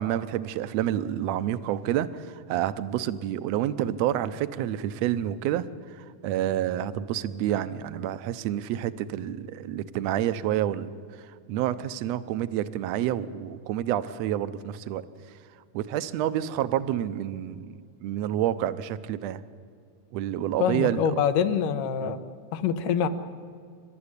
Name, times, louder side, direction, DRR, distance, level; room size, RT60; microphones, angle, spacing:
voice 1, 0.0-15.0 15.7-19.4 20.1-21.1 22.0-22.1, right 11 dB, 75° right, 13 dB, 1.7 m, -29 dB
voice 2, 20.6-22.2 22.5-23.1, left 7 dB, 90° left, 9 dB, 2.7 m, -25 dB
28.0 x 13.0 x 9.8 m, 2.2 s
omnidirectional pair, 3.7 m